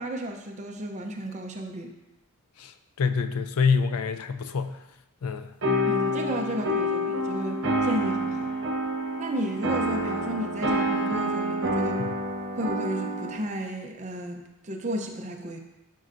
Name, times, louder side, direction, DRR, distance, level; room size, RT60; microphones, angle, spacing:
voice 1, 0.0-1.9 5.9-8.5 9.2-12.0 12.5-15.6, right 1 dB, 35° right, 2 dB, 0.6 m, -33 dB
voice 2, 3.0-4.8 5.2-5.5 12.0-12.1, left 5 dB, 75° left, 10 dB, 0.4 m, -26 dB
sound 1, 5.6-13.4, equal, 60° right, 1.1 m, -27 dB
10.5 x 4.5 x 2.6 m, 0.93 s
head